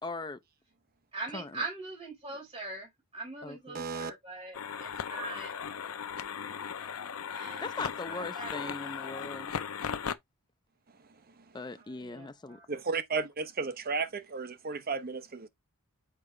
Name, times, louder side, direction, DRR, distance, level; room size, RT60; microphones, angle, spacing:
voice 1, 0.0-0.4 1.3-1.6 3.4-3.8 7.6-9.6 11.5-12.6, left 3 dB, 20° left, 0.5 m, -39 dB
voice 2, 1.1-5.5 7.3-7.8 8.0-8.9 11.8-12.7, right 2 dB, 30° right, 3.8 m, -42 dB
voice 3, 3.7-4.1 7.4-7.6 12.7-15.5, right 4 dB, 45° right, 0.8 m, -34 dB
sound 1, 4.5-10.1, left 7 dB, 70° left, 0.6 m, -37 dB
6.7 x 4.8 x 3.2 m
head